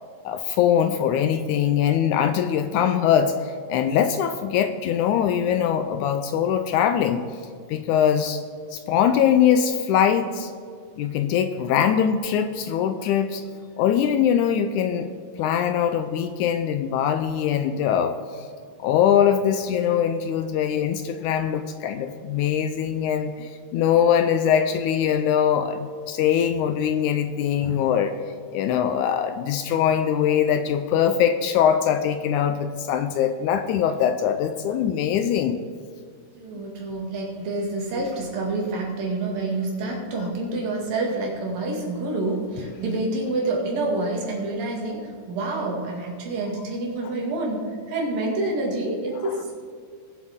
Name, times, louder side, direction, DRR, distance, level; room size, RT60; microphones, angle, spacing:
voice 1, 0.3-7.3 7.7-8.4 8.7-10.5 11.0-13.4 13.8-15.1 15.4-18.2 18.8-28.1 28.5-35.6 49.3-49.4, left 9 dB, 80° left, 9 dB, 1.8 m, -22 dB
voice 2, 36.4-49.5, right 2 dB, 85° right, -1 dB, 3.8 m, -28 dB
20.0 x 7.9 x 3.6 m, 2.1 s
omnidirectional pair, 3.9 m